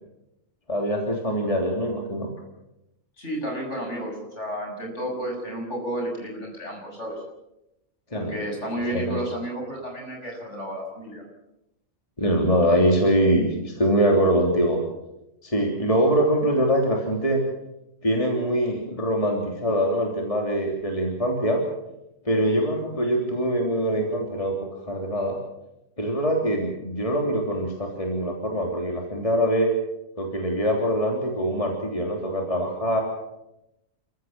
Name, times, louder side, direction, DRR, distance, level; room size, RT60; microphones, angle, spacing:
voice 1, 0.7-2.3 8.1-8.3 8.9-9.2 12.2-14.8 15.4-17.4 18.0-21.6 22.2-24.5 24.8-25.4 26.0-29.7 30.2-33.0, equal, 25° left, 1 dB, 3.3 m, -23 dB
voice 2, 3.2-7.2 8.2-11.2, equal, 60° left, 1 dB, 7.3 m, -32 dB
30.0 x 14.5 x 7.6 m, 0.89 s
omnidirectional pair, 1.4 m